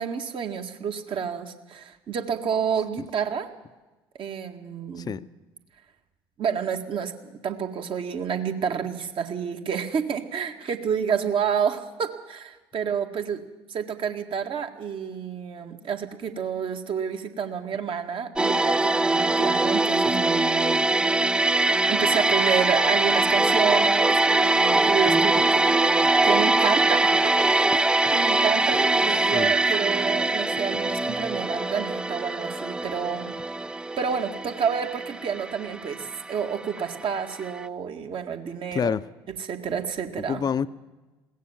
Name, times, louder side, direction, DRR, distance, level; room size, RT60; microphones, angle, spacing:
voice 1, 0.0-3.5 4.2-5.1 6.4-7.1 7.4-13.4 13.7-20.8 21.9-27.3 27.6-33.3 34.0-38.9 39.4-40.4, right 7 dB, 45° right, 2.0 m, -29 dB
voice 2, 5.0-5.3 29.2-29.5 38.7-39.1 40.3-40.7, left 7 dB, 35° left, 0.7 m, -27 dB
sound 1, 18.4-37.2 37.5-37.7, right 2 dB, 5° right, 0.6 m, -22 dB
21.0 x 17.0 x 7.3 m
figure-of-eight pair, 55°, 12 cm